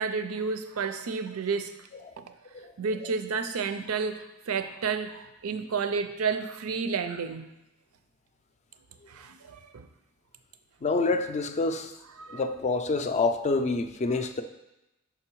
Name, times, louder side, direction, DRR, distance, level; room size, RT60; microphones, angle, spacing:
voice 1, 0.0-1.7 2.2-2.3 2.8-7.5 9.1-9.9 12.2-12.4, right 5 dB, 90° right, 9 dB, 0.5 m, -31 dB
voice 2, 10.8-11.9 12.3-14.4, left 3 dB, 35° left, 8 dB, 0.4 m, -27 dB
6.0 x 3.9 x 4.5 m, 0.93 s
head